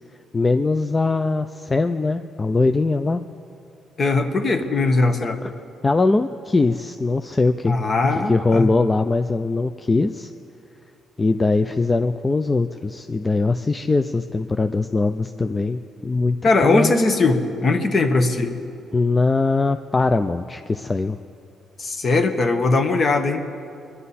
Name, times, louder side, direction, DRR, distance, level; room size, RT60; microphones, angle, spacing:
voice 1, 0.3-3.2 5.4-5.5 5.8-7.7 8.1-10.3 11.2-16.4 16.6-16.9 18.9-21.2, left 3 dB, 25° left, 9 dB, 0.4 m, -21 dB
voice 2, 4.0-5.4 7.7-8.7 16.4-18.5 21.8-23.4, left 3 dB, 45° left, 7 dB, 1.2 m, -20 dB
22.5 x 11.0 x 4.2 m, 2.6 s
cardioid pair, 90°, 0 cm